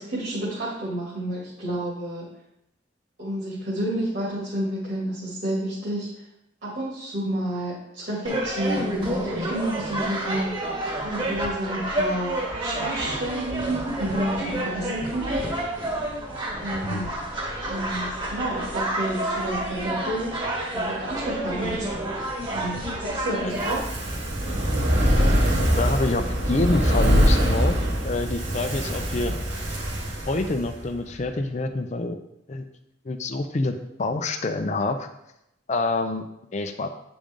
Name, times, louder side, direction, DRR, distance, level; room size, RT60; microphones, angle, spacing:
voice 1, 0.0-2.3 3.2-6.1 6.6-10.7 11.0-15.5 16.6-17.1 17.7-20.3 20.7-21.9 22.5-23.8, right 1 dB, 55° right, -7 dB, 2.4 m, -30 dB
sound 1, 8.3-23.8, right 1 dB, 25° right, 1.4 m, -29 dB
Fire, 23.5-30.9 31.2-31.3, equal, 75° right, 2.5 m, -23 dB
voice 2, 25.8-27.8 28.0-29.3 30.3-32.2 32.5-32.6 33.0-35.1 35.7-36.2 36.5-36.9, left 2 dB, 35° left, 6 dB, 0.5 m, -27 dB
8.8 x 5.1 x 3.7 m, 0.82 s
head